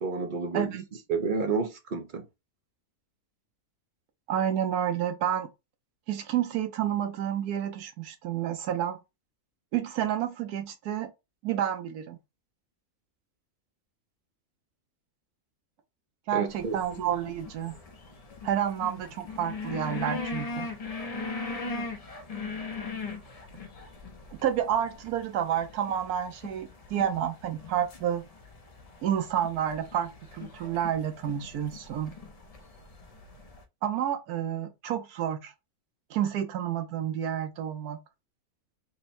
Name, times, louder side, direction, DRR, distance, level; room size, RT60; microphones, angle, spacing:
voice 1, 0.0-0.7 1.1-2.3 16.3-16.8, right 4 dB, 55° right, 0.5 m, -30 dB
voice 2, 0.5-0.8 4.3-5.5 6.1-9.0 9.7-11.1 11.4-12.2 16.3-17.8 18.4-20.7 24.3-28.3 29.0-32.1 33.8-35.5 36.1-38.0, right 10 dB, 85° right, 1.2 m, -30 dB
sound 1, 16.5-33.6, left 3 dB, 50° left, 0.4 m, -40 dB
3.7 x 2.1 x 4.1 m
omnidirectional pair, 1.6 m